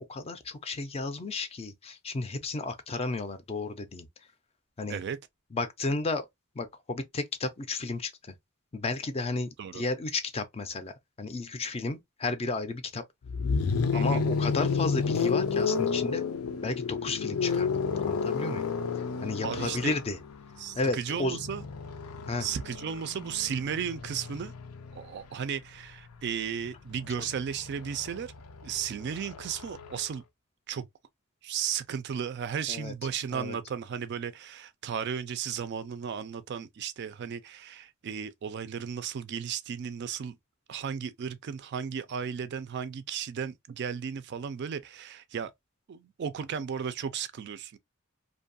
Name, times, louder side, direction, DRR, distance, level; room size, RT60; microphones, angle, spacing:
voice 1, 0.1-4.1 4.8-5.0 5.5-6.3 6.6-8.1 8.7-10.9 11.2-13.0 13.9-16.2 16.6-18.7 19.2-20.2 20.8-21.4 22.3-22.5 32.7-32.9 33.3-33.6, left 3 dB, 30° left, 0.4 m, -33 dB
sound 1, 13.2-25.2 26.5-30.1, left 5 dB, 90° left, 0.5 m, -31 dB
voice 2, 13.9-14.2 19.4-20.0 20.6-21.6 22.4-24.5 24.9-28.3 28.6-30.2 30.7-30.9 31.4-40.4 40.7-45.5 45.9-47.8, right 7 dB, 50° right, 0.3 m, -35 dB
2.6 x 2.3 x 2.5 m
head